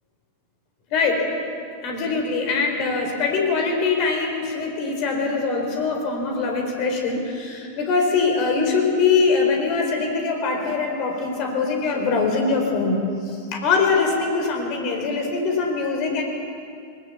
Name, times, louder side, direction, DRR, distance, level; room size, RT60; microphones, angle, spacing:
voice 1, 0.9-1.2 1.8-16.2, left 4 dB, 40° left, 2 dB, 4.4 m, -22 dB
20.0 x 19.0 x 7.2 m, 2.4 s
figure-of-eight pair, 90°, 0 cm